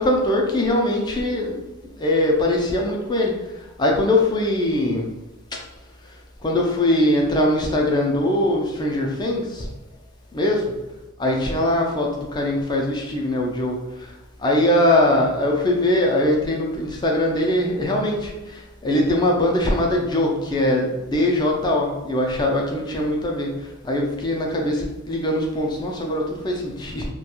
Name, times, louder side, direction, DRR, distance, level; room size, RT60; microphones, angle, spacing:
voice 1, 0.0-1.6 2.0-3.3 3.8-5.1 6.4-9.7 10.3-10.7 11.2-14.1 14.4-23.5 23.8-27.1, left 1 dB, 20° left, 0 dB, 0.3 m, -21 dB
2.3 x 2.2 x 2.9 m, 1.1 s
head